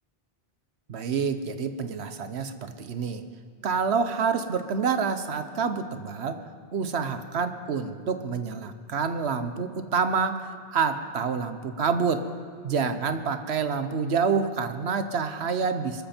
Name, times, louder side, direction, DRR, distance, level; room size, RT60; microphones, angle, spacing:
voice 1, 0.9-3.2 3.6-6.4 6.7-12.3 12.6-16.0, right 5 dB, 90° right, 10 dB, 1.2 m, -27 dB
24.0 x 13.5 x 4.4 m, 2.2 s
omnidirectional pair, 1.1 m